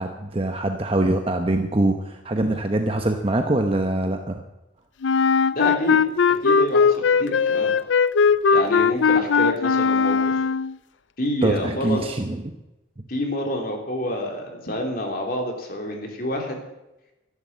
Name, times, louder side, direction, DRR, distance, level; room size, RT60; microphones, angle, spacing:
voice 1, 0.0-4.4 11.4-12.6, right 1 dB, 30° right, 5 dB, 0.9 m, -23 dB
Wind instrument woodwind instrument, 5.0-10.7, left 5 dB, 70° left, 0.5 m, -19 dB
voice 2, 5.5-6.0 6.4-7.7 8.5-10.3 11.2-12.0 13.1-16.6, left 1 dB, 50° left, 2 dB, 3.3 m, -28 dB
14.0 x 11.5 x 7.5 m, 0.96 s
head